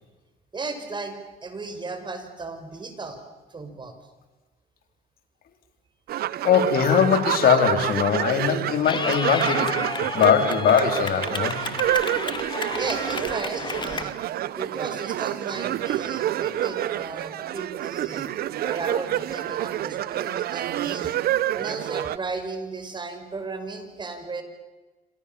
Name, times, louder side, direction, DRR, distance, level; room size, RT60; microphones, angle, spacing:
voice 1, 0.5-3.2 3.5-3.9 12.7-14.1 14.6-18.3 18.6-21.1 21.5-24.4, right 3 dB, 25° right, 7 dB, 5.9 m, -35 dB
sound 1, 6.1-22.2, right 12 dB, 65° right, 1.0 m, -28 dB
voice 2, 6.4-9.9 10.1-11.6, left 8 dB, 60° left, 7 dB, 4.5 m, -21 dB
Clapping / Cheering, 8.8-14.0, left 4 dB, 25° left, 2.7 m, -32 dB
28.5 x 26.0 x 7.2 m, 1.2 s
cardioid pair, 110°, 17 cm